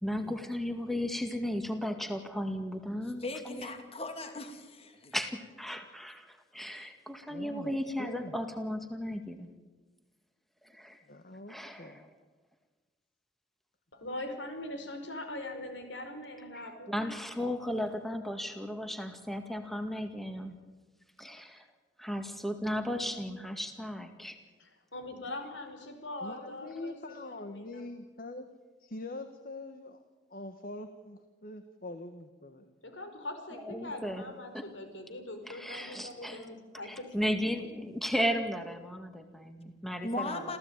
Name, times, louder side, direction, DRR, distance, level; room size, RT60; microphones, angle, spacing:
voice 1, 0.0-3.7 5.1-9.5 10.6-11.0 11.5-12.1 16.5-20.6 21.2-21.6 22.0-24.4 33.5-34.2 34.5-34.7 35.4-36.4 37.1-40.6, equal, ahead, 6 dB, 1.9 m, -35 dB
voice 2, 3.2-5.1 40.0-40.6, left 2 dB, 35° left, 7 dB, 2.6 m, -38 dB
voice 3, 7.3-8.3 11.1-12.1 26.2-28.5 28.8-30.0 30.3-32.7, left 2 dB, 50° left, 8 dB, 1.5 m, -44 dB
voice 4, 14.0-17.4 24.6-27.0 27.2-27.9 32.8-36.9, left 1 dB, 90° left, 6 dB, 5.0 m, -42 dB
27.5 x 15.5 x 9.1 m, 1.3 s
head